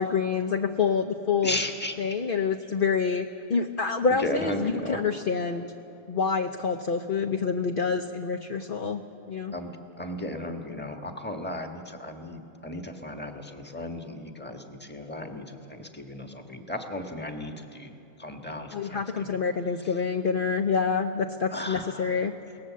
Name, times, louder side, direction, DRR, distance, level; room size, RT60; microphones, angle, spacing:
voice 1, 0.0-1.6 2.0-5.6 6.1-9.0 9.3-9.5 18.7-22.3, left 5 dB, 45° left, 5 dB, 0.8 m, -27 dB
voice 2, 1.4-2.0 4.1-5.0 9.5-19.4 19.8-19.9 21.5-22.1, left 1 dB, 5° left, 4 dB, 1.4 m, -35 dB
28.0 x 18.5 x 7.6 m, 2.8 s
omnidirectional pair, 1.5 m